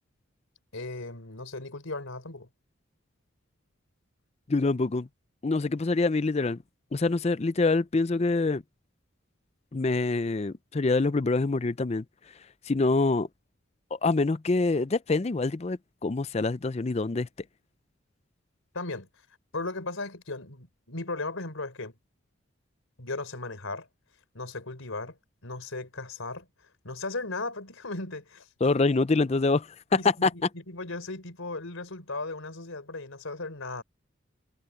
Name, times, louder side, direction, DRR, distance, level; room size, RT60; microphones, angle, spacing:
voice 1, 0.7-2.5 18.7-19.1 19.5-21.9 23.0-23.9 24.3-25.2 25.4-26.5 26.8-28.5 30.0-30.3 30.7-33.8, left 3 dB, 85° left, 3.8 m, -36 dB
voice 2, 4.5-5.1 5.4-6.6 6.9-8.6 9.7-12.0 12.7-13.3 14.0-17.3 28.6-30.3, left 3 dB, 30° left, 0.5 m, -25 dB
head